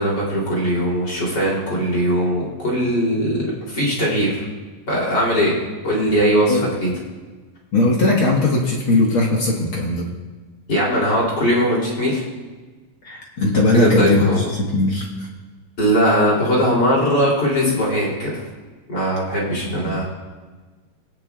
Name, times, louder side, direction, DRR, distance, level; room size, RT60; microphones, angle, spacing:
voice 1, 0.0-4.5 4.9-5.6 5.8-6.9 10.7-12.2 13.7-14.4 15.8-18.4 18.9-20.0, equal, 30° left, -5 dB, 3.5 m, -20 dB
voice 2, 7.7-10.1 13.0-15.3 19.5-20.0, left 2 dB, 50° left, -2 dB, 1.7 m, -19 dB
19.5 x 10.0 x 2.4 m, 1.3 s
omnidirectional pair, 3.8 m